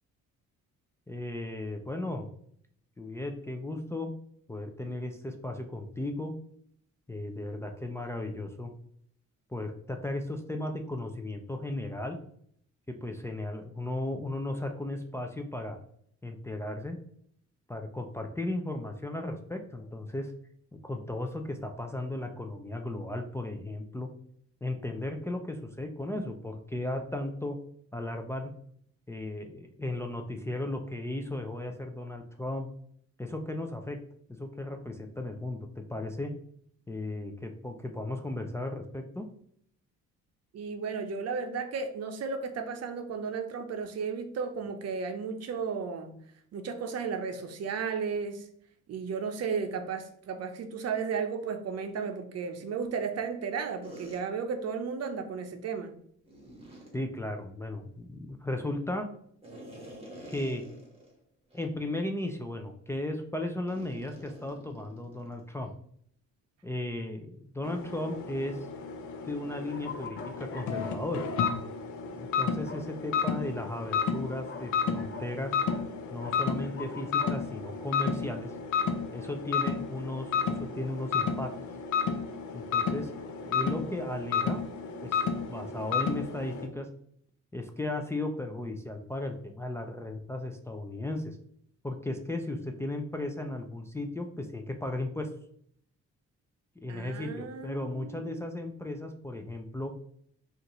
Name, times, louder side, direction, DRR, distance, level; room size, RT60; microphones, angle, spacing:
voice 1, 1.1-2.3 3.0-4.1 4.5-6.3 7.1-8.7 9.5-12.2 12.9-15.8 16.2-17.0 17.7-20.3 20.7-24.1 24.6-27.6 27.9-28.5 29.1-32.7 33.2-34.0 34.4-36.3 36.9-39.3 56.9-59.1 60.3-60.6 61.5-65.7 66.6-68.7 69.2-71.3 72.1-75.5 76.1-78.5 79.1-81.5 82.5-83.1 83.4-84.6 85.0-86.9 87.5-91.4 91.8-95.3 96.8-99.9, left 1 dB, 10° left, 3 dB, 0.4 m, -35 dB
voice 2, 40.5-46.1 46.5-48.4 48.9-55.9 96.9-98.5, right 5 dB, 55° right, 6 dB, 0.7 m, -34 dB
sound 1, 53.8-54.2 56.3-57.0 59.4-61.1 61.5-61.7 62.2-62.4 63.7-65.5, right 1 dB, 20° right, 1.7 m, -48 dB
sound 2, 67.6-86.7, left 6 dB, 75° left, 0.7 m, -32 dB
sound 3, 69.5-71.0 71.4-71.6 72.6-72.8 73.9-75.3 75.7-75.9 76.2-77.3, left 5 dB, 40° left, 0.8 m, -44 dB
5.1 x 2.5 x 3.0 m, 0.66 s
cardioid pair, 90°, 30 cm